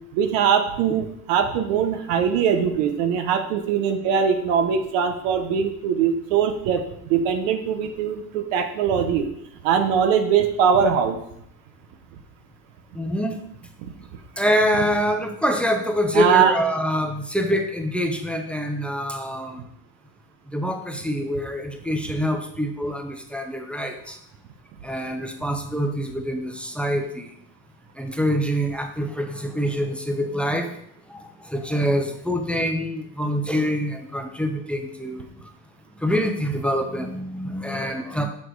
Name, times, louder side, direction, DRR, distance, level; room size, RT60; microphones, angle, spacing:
voice 1, 0.1-9.3 9.6-11.2 13.8-13.9 16.1-16.5, right 7 dB, 85° right, 7 dB, 1.2 m, -21 dB
voice 2, 12.9-13.4 14.4-19.7 20.5-24.2 24.8-27.3 28.0-30.8 31.1-35.3 36.0-38.3, equal, 5° left, 5 dB, 0.8 m, -25 dB
6.5 x 6.1 x 4.8 m, 0.73 s
cardioid pair, 120°, 39 cm